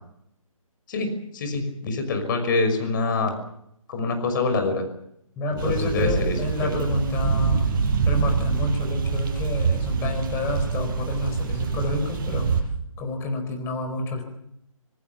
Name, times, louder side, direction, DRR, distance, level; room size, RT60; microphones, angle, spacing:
voice 1, 0.9-3.3 3.9-4.8 5.6-6.9, left 3 dB, 35° left, 7 dB, 6.1 m, -25 dB
voice 2, 5.4-7.7 8.0-12.5 13.0-14.2, left 2 dB, 15° left, 5 dB, 4.5 m, -29 dB
sound 1, 5.6-12.6, right 5 dB, 35° right, 6.6 m, -25 dB
26.5 x 19.0 x 7.3 m, 0.74 s
figure-of-eight pair, 150°, 18 cm